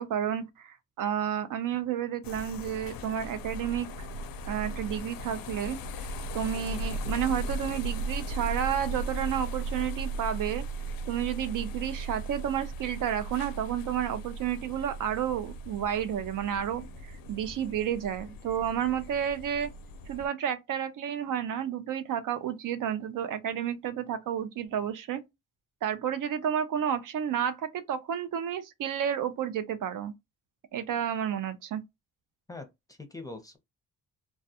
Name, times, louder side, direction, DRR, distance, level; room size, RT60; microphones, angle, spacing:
voice 1, 0.0-4.1 4.5-6.1 6.3-10.7 11.1-19.7 20.1-25.2 25.8-30.1 30.7-31.8, right 9 dB, 65° right, 0.5 m, -31 dB
sound 1, 2.2-20.3, right 2 dB, 75° left, 0.5 m, -37 dB
voice 2, 32.5-33.6, left 2 dB, 10° left, 0.6 m, -43 dB
2.3 x 2.2 x 2.7 m
cardioid pair, 85°, 35 cm